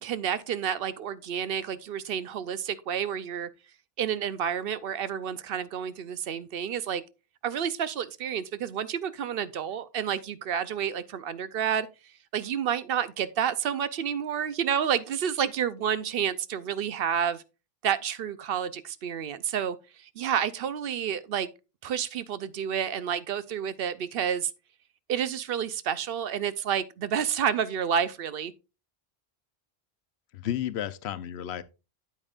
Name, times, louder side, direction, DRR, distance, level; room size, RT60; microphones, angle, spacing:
voice 1, 0.0-3.5 4.0-7.0 7.4-11.9 12.3-17.4 17.8-21.5 21.8-24.5 25.1-28.5, right 8 dB, 65° right, 0.8 m, -30 dB
voice 2, 30.3-31.6, left 11 dB, 85° left, 0.9 m, -32 dB
8.7 x 8.6 x 2.4 m
omnidirectional pair, 1.1 m